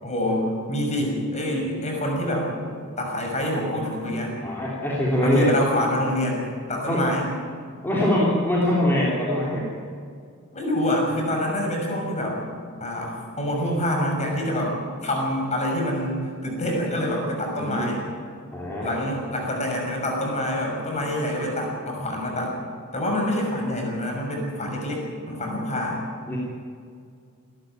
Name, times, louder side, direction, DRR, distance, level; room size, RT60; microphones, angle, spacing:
voice 1, 0.0-2.5 3.0-4.3 5.1-6.4 6.7-7.3 10.5-12.4 12.8-14.7 15.0-18.0 18.8-22.6 22.9-26.0, left 1 dB, 30° left, 0 dB, 6.2 m, -26 dB
voice 2, 4.4-5.5 6.9-7.0 7.8-9.7 17.6-17.9 18.5-19.0 26.3-26.4, left 1 dB, 10° left, -6 dB, 3.6 m, -23 dB
27.0 x 13.0 x 9.4 m, 2.3 s
head